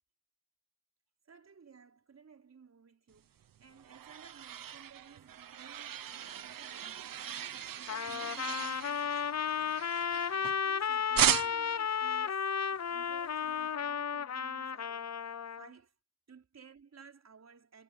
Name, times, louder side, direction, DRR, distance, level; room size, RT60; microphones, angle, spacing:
voice 1, 1.2-15.9 16.3-17.8, right 6 dB, 50° right, 4.9 m, -57 dB
sound 1, 3.4-10.7 11.1-11.8, right 9 dB, 80° right, 1.0 m, -36 dB
Trumpet, 7.9-15.7, left 7 dB, 50° left, 0.8 m, -34 dB
wide cardioid pair, 140°, 33 cm